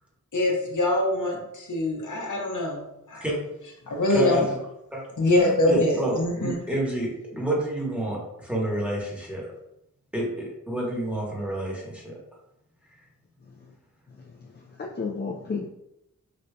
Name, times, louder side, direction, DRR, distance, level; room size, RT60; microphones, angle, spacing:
voice 1, 0.3-2.8 3.1-3.2 3.9-4.5 5.2-6.6, left 1 dB, 70° left, 0 dB, 0.8 m, -24 dB
voice 2, 4.1-4.4 4.9-5.0 5.4-9.5 10.1-12.2, right 1 dB, 5° right, -4 dB, 1.2 m, -29 dB
voice 3, 14.2-15.7, left 4 dB, 35° left, 0 dB, 0.4 m, -33 dB
4.9 x 2.7 x 2.2 m, 0.85 s
wide cardioid pair, 65°, 31 cm